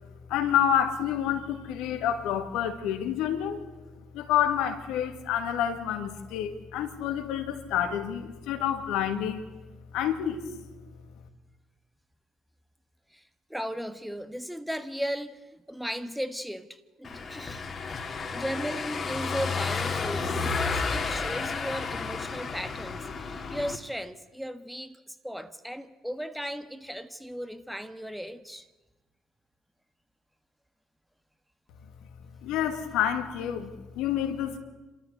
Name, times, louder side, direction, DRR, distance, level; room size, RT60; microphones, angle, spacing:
voice 1, 0.3-3.6 4.1-9.4 9.9-10.6 32.4-34.6, left 9 dB, 75° left, 2.0 m, -28 dB
voice 2, 13.5-17.7 18.3-28.7, equal, ahead, 1.4 m, -36 dB
Car passing by / Engine, 17.0-23.8, left 4 dB, 40° left, 2.4 m, -32 dB
28.0 x 13.5 x 8.3 m
hypercardioid pair, 55°, 0 cm